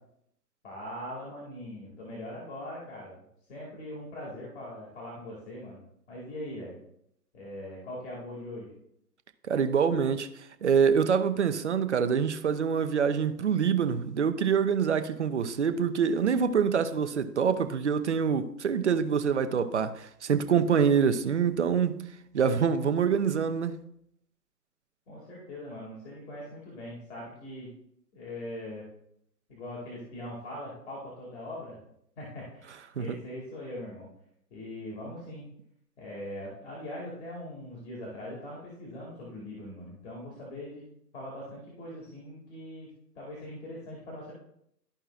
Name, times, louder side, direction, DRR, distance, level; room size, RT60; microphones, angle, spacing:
voice 1, 0.6-3.1 3.5-6.8 7.3-8.7 25.1-27.7 28.1-28.8 29.5-31.8 32.2-34.1 34.5-35.5 36.0-40.9 41.1-42.9 43.2-44.3, left 1 dB, 40° left, 2.3 m, -41 dB
voice 2, 9.5-10.3 10.6-22.0 22.3-23.7 33.0-33.2, right 7 dB, 45° right, 0.6 m, -25 dB
13.0 x 5.4 x 2.4 m
figure-of-eight pair, 135°, 50 cm